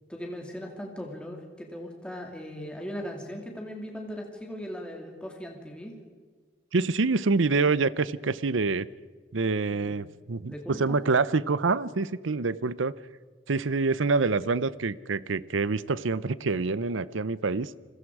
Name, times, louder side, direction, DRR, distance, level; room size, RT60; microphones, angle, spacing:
voice 1, 0.1-6.0 9.7-10.0 10.5-11.0, equal, 5° left, 1 dB, 2.8 m, -39 dB
voice 2, 6.7-8.9 9.3-12.9 13.5-17.7, right 4 dB, 80° right, 18 dB, 0.7 m, -26 dB
29.5 x 21.5 x 4.9 m, 1.5 s
head